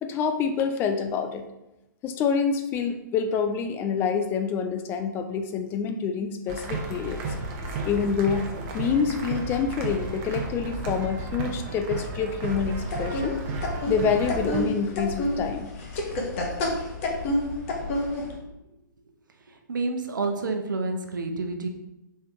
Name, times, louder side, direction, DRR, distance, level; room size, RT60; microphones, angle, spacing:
voice 1, 0.0-1.5 2.0-7.2 7.8-8.5 8.7-12.7 13.0-13.4 13.9-15.7, left 6 dB, 20° left, 6 dB, 0.3 m, -27 dB
sound 1, 6.5-14.6, right 3 dB, 40° right, 0.9 m, -33 dB
sound 2, 12.4-18.4, left 1 dB, 40° left, 1.0 m, -29 dB
voice 2, 19.7-21.7, right 3 dB, 70° right, 5 dB, 0.7 m, -28 dB
4.2 x 3.3 x 3.5 m, 0.92 s
figure-of-eight pair, 120°, 11 cm